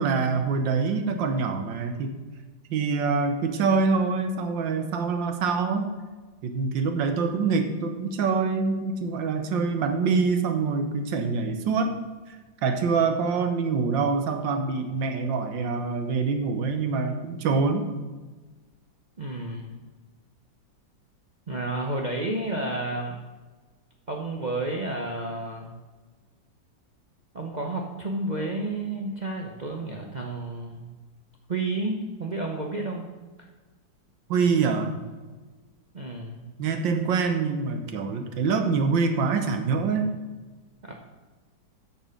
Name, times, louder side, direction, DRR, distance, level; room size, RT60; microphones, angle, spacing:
voice 1, 0.0-2.1 2.7-5.9 6.4-12.0 12.6-17.9 34.3-34.9 36.6-40.1, right 4 dB, 75° right, 6 dB, 1.6 m, -25 dB
voice 2, 19.2-19.7 21.5-23.2 24.1-25.7 27.3-30.8 31.5-33.1 35.9-36.4 40.8-40.9, right 2 dB, 60° right, 1 dB, 0.4 m, -31 dB
8.6 x 7.0 x 5.1 m, 1.3 s
omnidirectional pair, 2.1 m